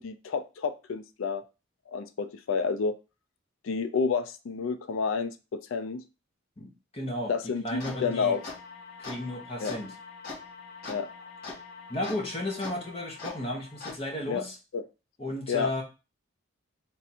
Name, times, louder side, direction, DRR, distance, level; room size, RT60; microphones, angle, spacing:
voice 1, 0.0-1.4 1.9-2.9 3.6-6.0 7.3-8.4 9.6-9.8 10.9-11.1 14.2-14.4 14.7-14.8 15.5-15.7, left 5 dB, 75° left, 11 dB, 0.4 m, -30 dB
voice 2, 6.6-7.3 7.6-8.3 9.0-9.9 11.9-14.6 15.2-15.8, left 1 dB, 30° left, 1 dB, 1.0 m, -34 dB
sound 1, 7.7-14.0, left 3 dB, 45° left, 1.3 m, -43 dB
3.6 x 2.5 x 4.2 m, 0.30 s
head